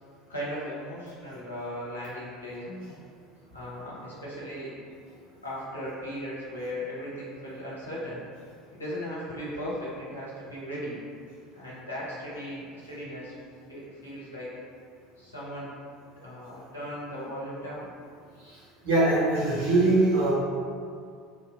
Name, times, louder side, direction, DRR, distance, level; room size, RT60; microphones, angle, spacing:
voice 1, 0.3-3.0 3.5-4.8 5.4-8.2 8.7-11.0 11.5-13.3 13.7-14.6 15.2-15.7 16.2-17.9, equal, 85° left, -8 dB, 0.6 m, -37 dB
voice 2, 18.4-20.3, right 2 dB, 70° right, -11 dB, 1.0 m, -23 dB
2.6 x 2.1 x 2.2 m, 2.2 s
figure-of-eight pair, 70°, 0 cm